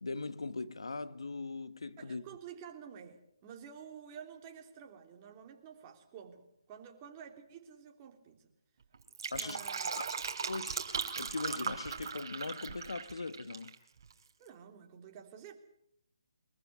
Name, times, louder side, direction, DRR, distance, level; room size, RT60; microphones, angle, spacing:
voice 1, 0.0-2.2 9.3-9.6 9.8-10.2 10.5-13.7, left 3 dB, 80° left, 1.4 m, -40 dB
voice 2, 2.0-8.5 9.3-10.0 14.4-15.5, right 8 dB, 25° right, 3.2 m, -51 dB
Fill (with liquid), 8.9-13.7 14.0-14.1, right 6 dB, 50° right, 3.0 m, -38 dB
24.5 x 14.5 x 9.6 m
figure-of-eight pair, 155°, 3 cm